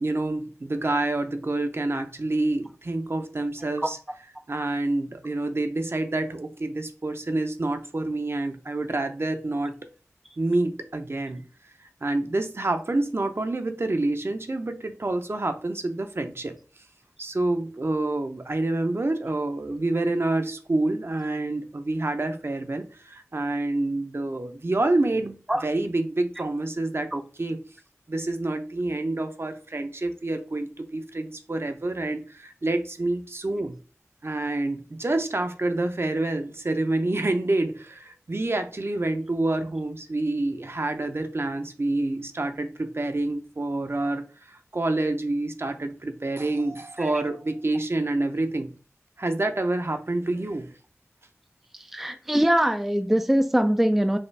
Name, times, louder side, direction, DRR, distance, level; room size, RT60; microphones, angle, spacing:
voice 1, 0.0-4.0 4.5-9.8 10.4-11.4 12.0-16.5 17.2-27.6 28.1-33.7 34.2-48.7 49.2-50.7, right 2 dB, 50° right, 0.6 m, -27 dB
voice 2, 51.9-54.2, equal, 5° right, 0.3 m, -22 dB
5.5 x 2.4 x 3.3 m
wide cardioid pair, 55°, 6 cm